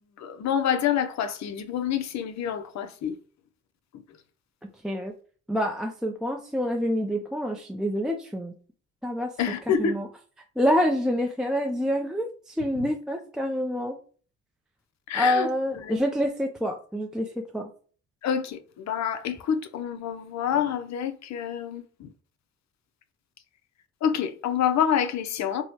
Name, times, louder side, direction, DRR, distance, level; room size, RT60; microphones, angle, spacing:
voice 1, 0.2-3.2 9.4-10.0 12.7-12.9 15.1-15.5 15.8-16.0 18.2-22.1 24.0-25.6, left 8 dB, 65° left, 0.6 m, -27 dB
voice 2, 5.5-8.5 9.0-9.3 9.8-10.1 10.6-14.0 15.1-17.7, equal, ahead, 0.4 m, -27 dB
4.6 x 2.1 x 2.8 m
cardioid pair, 90°, 30 cm